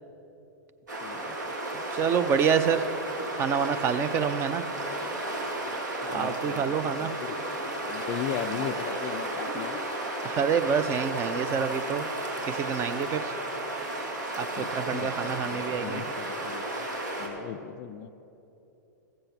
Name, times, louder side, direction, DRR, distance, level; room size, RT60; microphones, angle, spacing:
sound 1, 0.9-17.3, right 1 dB, 75° right, 2.0 m, -33 dB
voice 1, 1.0-1.5 5.7-5.8 6.0-7.4 7.8-9.9 14.6-16.9 17.2-18.1, left 10 dB, 35° left, 12 dB, 0.4 m, -38 dB
voice 2, 1.7-2.9 3.3-4.6 6.1-7.1 10.2-12.1 12.5-13.3 14.4-16.0, right 7 dB, 25° right, 12 dB, 0.5 m, -27 dB
14.0 x 7.7 x 5.9 m, 2.9 s
figure-of-eight pair, 105°, 10 cm